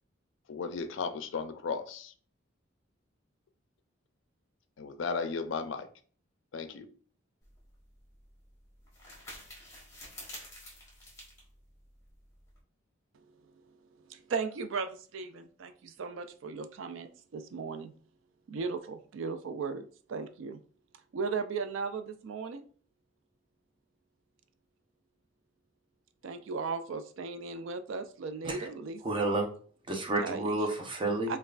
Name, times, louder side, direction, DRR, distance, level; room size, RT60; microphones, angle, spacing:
voice 1, 0.5-2.1 4.8-5.9 6.5-6.9, left 5 dB, 70° left, 0.4 m, -35 dB
sound 1, 7.4-12.6, left 1 dB, 15° left, 1.2 m, -50 dB
voice 2, 14.1-17.9 18.5-20.6 21.1-22.6 26.2-29.2 30.2-30.6 31.3-31.4, right 4 dB, 75° right, 0.4 m, -37 dB
voice 3, 29.0-29.5 29.9-31.3, right 2 dB, 25° right, 0.6 m, -30 dB
5.2 x 2.3 x 2.4 m
head